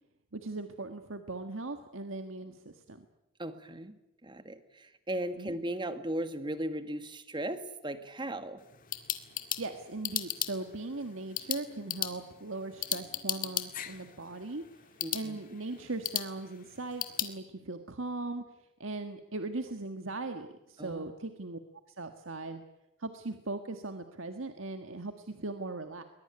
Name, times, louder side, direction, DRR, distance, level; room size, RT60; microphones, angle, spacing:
voice 1, 0.3-3.0 5.4-5.6 9.6-14.6 15.1-18.4 18.8-21.6 22.0-22.6 23.0-26.0, right 2 dB, 85° right, 7 dB, 1.6 m, -39 dB
voice 2, 3.4-8.6 15.0-15.4 20.8-21.1, right 1 dB, 25° right, 10 dB, 1.7 m, -37 dB
sound 1, 8.6-17.3, left 11 dB, 45° left, 1.9 m, -37 dB
22.0 x 21.0 x 9.8 m, 0.89 s
head